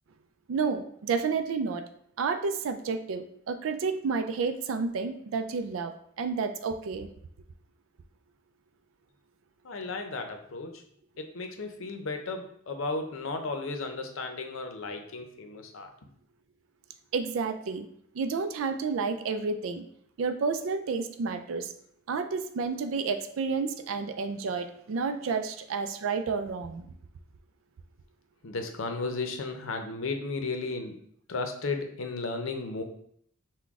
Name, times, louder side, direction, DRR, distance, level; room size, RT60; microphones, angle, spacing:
voice 1, 0.5-1.8 2.2-7.1 17.1-17.9 18.1-19.8 20.2-21.7 22.1-26.9, right 5 dB, 80° right, 8 dB, 0.4 m, -30 dB
voice 2, 9.6-10.8 11.2-15.9 28.4-31.0 31.3-32.8, left 3 dB, 80° left, 5 dB, 0.7 m, -34 dB
5.9 x 2.2 x 3.5 m, 0.66 s
head